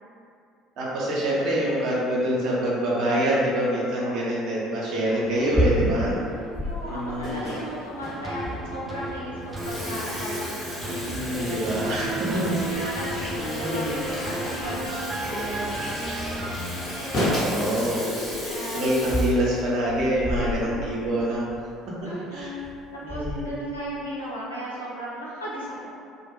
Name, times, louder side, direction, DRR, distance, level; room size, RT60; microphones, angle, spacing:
voice 1, 0.8-6.1 6.9-7.4 10.8-12.6 13.4-14.0 17.3-18.0 18.7-21.5 22.3-22.5 23.0-23.5, right 1 dB, 55° right, -6 dB, 0.7 m, -26 dB
voice 2, 5.0-5.8 6.2-8.4 8.7-11.0 12.6-17.4 18.1-19.0 20.4-21.1 22.0-25.9, equal, 85° left, -9 dB, 0.6 m, -36 dB
Water tap faucet / Sink (filling or washing), 5.2-6.7 7.2-7.3 8.0-8.1 8.4-8.5 8.9-9.1 9.4-20.8 21.1-21.2 21.5-21.6 22.4-22.7 23.1-23.5, equal, 20° left, 1.1 m, -32 dB
sound 1, 5.4-17.3, left 1 dB, 35° left, 0.9 m, -38 dB
sound 2, 8.2-17.6 18.1-18.2, right 1 dB, 20° right, 0.4 m, -33 dB
2.3 x 2.0 x 3.4 m, 2.4 s
figure-of-eight pair, 60°, 0 cm